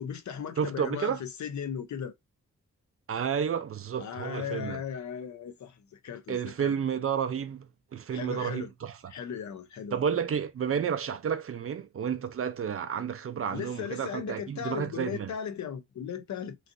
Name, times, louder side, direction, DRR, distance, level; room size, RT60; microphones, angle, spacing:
voice 1, 0.0-2.1 4.0-6.7 8.1-8.7 9.1-10.2 13.5-16.6, left 8 dB, 70° left, 0.6 m, -37 dB
voice 2, 0.6-1.2 3.1-4.8 6.3-9.1 9.9-15.3, right 7 dB, 50° right, 0.5 m, -31 dB
3.1 x 2.5 x 2.5 m
wide cardioid pair, 120°, 29 cm